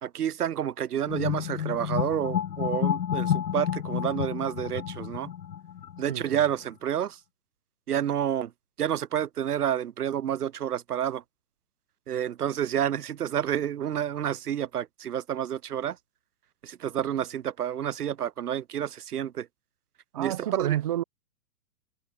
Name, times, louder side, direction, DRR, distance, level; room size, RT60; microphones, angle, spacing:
voice 1, 0.0-5.3 6.0-7.2 7.9-8.5 8.8-11.2 12.1-16.0 16.6-19.5 20.2-20.8, right 10 dB, 65° right, 1.3 m, -29 dB
sound 1, 1.1-6.4, left 9 dB, 85° left, 1.6 m, -30 dB
voice 2, 6.1-6.4 20.1-21.0, right 12 dB, 20° right, 0.9 m, -29 dB
hypercardioid pair, 175°, 48 cm